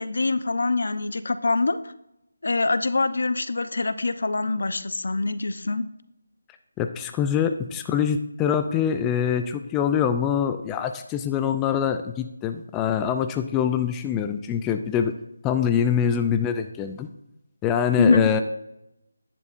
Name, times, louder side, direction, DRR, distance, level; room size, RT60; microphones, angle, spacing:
voice 1, 0.0-1.9 2.4-5.8 18.0-18.3, left 3 dB, 65° left, 12 dB, 0.8 m, -24 dB
voice 2, 6.8-15.1 15.4-17.1 17.6-18.4, left 8 dB, 10° left, 7 dB, 0.4 m, -24 dB
13.5 x 10.5 x 2.6 m, 0.83 s
figure-of-eight pair, 170°, 0 cm